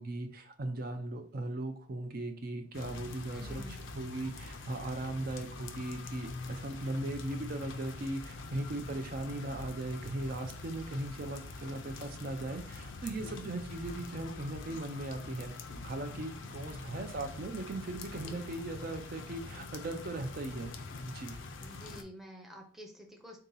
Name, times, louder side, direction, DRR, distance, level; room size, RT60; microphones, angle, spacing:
voice 1, 0.0-15.5 15.8-20.7 21.1-21.4, right 2 dB, 45° right, 5 dB, 0.4 m, -38 dB
sound 1, 2.7-22.0, left 3 dB, 70° left, 0.5 m, -44 dB
voice 2, 3.3-3.8 13.3-13.8 18.2-18.4 21.6-23.4, equal, ahead, 1 dB, 0.6 m, -50 dB
3.7 x 2.8 x 3.8 m, 0.44 s
head